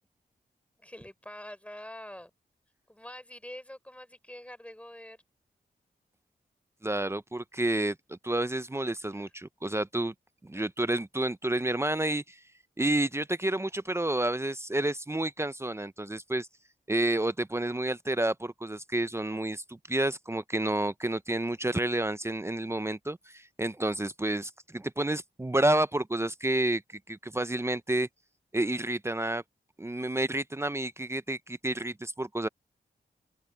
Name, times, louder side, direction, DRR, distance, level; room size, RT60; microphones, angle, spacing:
voice 1, 0.8-2.3 2.9-5.2 9.1-9.3, left 1 dB, 5° left, 4.9 m, -45 dB
voice 2, 6.8-10.1 10.4-12.4 12.8-16.5 16.9-26.8 27.1-28.1 28.5-29.4 29.8-32.5, right 1 dB, 15° right, 0.7 m, -30 dB
open air
cardioid pair, 60°, 17 cm